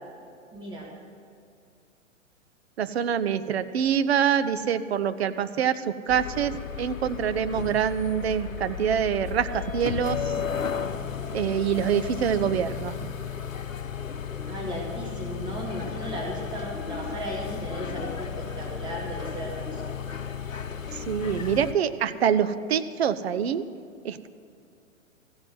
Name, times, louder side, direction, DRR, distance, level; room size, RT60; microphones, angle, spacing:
voice 1, 0.5-0.9 14.5-19.8, equal, 10° right, -3 dB, 1.9 m, -35 dB
voice 2, 2.8-10.2 11.3-13.1 21.1-23.6 24.0-24.3, right 8 dB, 50° right, 12 dB, 0.7 m, -25 dB
sound 1, 6.1-21.7, left 7 dB, 80° left, 0.9 m, -34 dB
15.0 x 6.3 x 9.2 m, 2.4 s
figure-of-eight pair, 115°, 39 cm